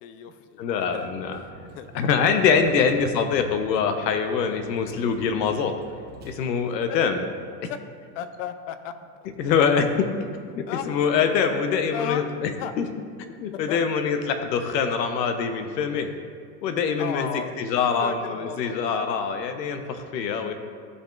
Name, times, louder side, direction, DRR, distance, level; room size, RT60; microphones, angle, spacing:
voice 1, 0.0-1.1 1.7-1.9 2.2-2.8 6.9-7.0 7.7-7.8 8.1-9.0 10.7-10.9 11.3-11.5 11.9-12.2 12.6-12.7 13.7-13.9 17.0-17.5 18.0-18.7, left 9 dB, 50° left, 11 dB, 0.6 m, -35 dB
voice 2, 0.6-1.4 1.9-5.8 6.2-7.3 7.6-7.7 9.4-10.1 10.5-12.9 13.4-16.1 16.6-20.5, left 6 dB, 80° left, 7 dB, 1.0 m, -24 dB
Vehicle, 0.9-6.3, right 2 dB, 20° right, 0.9 m, -46 dB
13.5 x 5.4 x 2.5 m, 2.1 s
supercardioid pair, 150°, 50 cm